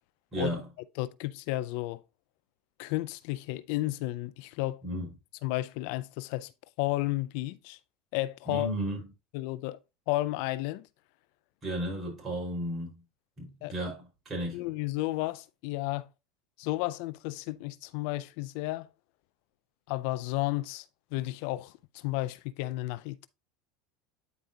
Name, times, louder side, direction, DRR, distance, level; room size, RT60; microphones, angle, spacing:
voice 1, 0.3-0.7 4.8-5.1 8.5-9.0 11.6-13.0 13.4-14.6, right 1 dB, 30° right, 4.7 m, -34 dB
voice 2, 1.0-2.0 2.8-4.8 5.4-6.5 6.8-7.8 8.1-8.7 9.3-9.8 10.1-10.9 13.6-13.7 14.5-16.1 16.6-18.9 19.9-20.8 21.1-23.3, left 18 dB, 70° left, 0.4 m, -32 dB
9.3 x 4.9 x 2.8 m
supercardioid pair, 100°, 0 cm